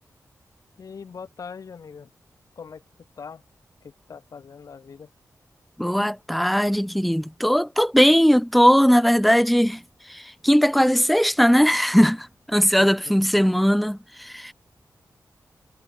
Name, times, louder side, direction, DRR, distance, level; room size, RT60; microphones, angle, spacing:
voice 1, 0.8-2.1 2.6-2.8 3.2-3.4 3.8-5.1 12.8-13.2, left 6 dB, 60° left, 2.5 m, -41 dB
voice 2, 5.8-9.8 10.1-14.5, equal, ahead, 0.8 m, -19 dB
wide cardioid pair, 180°, 6 cm